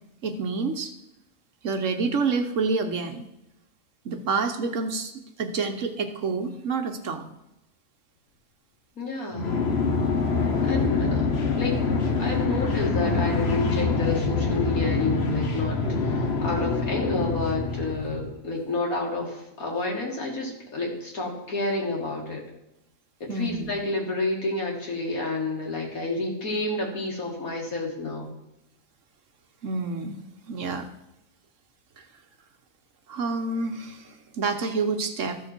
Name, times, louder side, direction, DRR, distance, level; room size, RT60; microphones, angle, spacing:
voice 1, 0.2-0.9 1.6-3.2 4.0-5.1 5.4-7.2 23.3-23.7 29.6-30.2 30.5-30.9 32.0-32.1 33.1-35.4, right 4 dB, 60° right, 6 dB, 1.2 m, -28 dB
voice 2, 9.0-9.6 10.6-11.2 11.6-11.7 12.2-22.4 23.2-28.3, left 2 dB, 75° left, 0 dB, 2.7 m, -29 dB
sound 1, 9.3-18.3, left 4 dB, 50° left, 1.3 m, -25 dB
13.5 x 6.6 x 4.5 m, 0.91 s
omnidirectional pair, 1.5 m